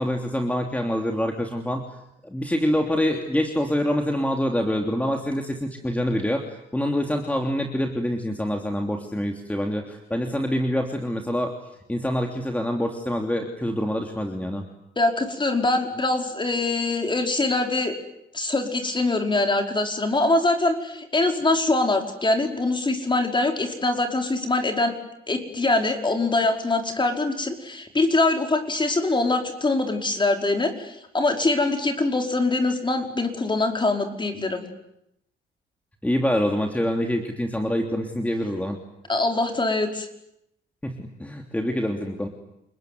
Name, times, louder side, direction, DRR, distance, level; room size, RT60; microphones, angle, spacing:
voice 1, 0.0-1.9 2.2-6.4 6.7-11.5 11.9-14.6 36.0-38.8 40.8-42.3, equal, 5° left, 3 dB, 3.3 m, -26 dB
voice 2, 14.9-17.9 18.3-25.0 25.3-34.6 39.1-40.1, left 2 dB, 25° left, 4 dB, 5.2 m, -23 dB
29.0 x 21.0 x 9.6 m, 0.81 s
cardioid pair, 90°, 20 cm